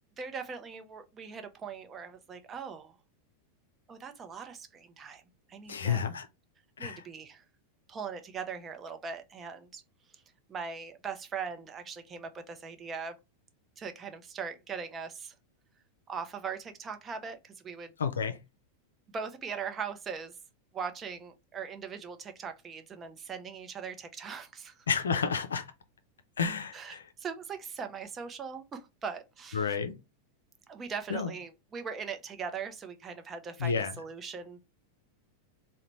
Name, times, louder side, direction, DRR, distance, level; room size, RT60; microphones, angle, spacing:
voice 1, 0.2-3.0 3.9-5.2 5.5-6.0 6.8-7.4 7.9-9.8 10.1-10.2 10.5-13.2 13.8-15.3 16.1-17.9 19.1-20.3 20.7-24.9 26.7-29.8 30.7-34.6, right 6 dB, 25° right, 0.6 m, -40 dB
voice 2, 5.7-6.3 6.8-7.0 18.0-18.4 24.9-25.7 26.4-27.0 29.5-30.0 31.1-31.3 33.6-33.9, left 6 dB, 70° left, 0.5 m, -30 dB
3.8 x 2.1 x 3.0 m
figure-of-eight pair, 90°, 0 cm